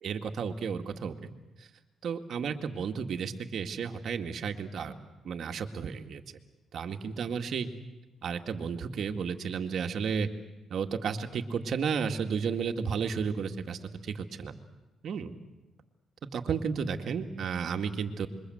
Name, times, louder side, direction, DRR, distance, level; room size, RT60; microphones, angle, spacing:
voice 1, 0.0-1.3 2.0-4.9 5.2-6.2 6.7-7.7 8.2-10.3 10.7-14.5 15.0-15.3 16.3-18.3, right 6 dB, 60° right, 5 dB, 2.1 m, -33 dB
26.5 x 23.0 x 7.9 m, 1.1 s
cardioid pair, 90°, 0 cm